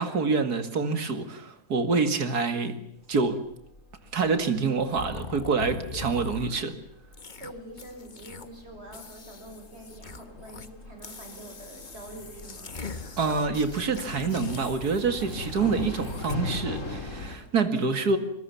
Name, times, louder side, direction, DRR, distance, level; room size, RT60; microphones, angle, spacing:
voice 1, 0.0-2.8 3.1-3.4 4.1-6.7 13.2-18.2, right 4 dB, 80° right, 2.7 m, -26 dB
sound 1, 3.1-17.4, left 3 dB, 50° left, 4.0 m, -41 dB
sound 2, 5.0-6.7 7.1-7.5 7.8-8.6 8.9-10.7 11.0-16.4, left 3 dB, 30° left, 1.4 m, -42 dB
voice 2, 7.3-12.7, right 1 dB, 40° right, 6.7 m, -45 dB
25.5 x 22.0 x 7.1 m
omnidirectional pair, 1.6 m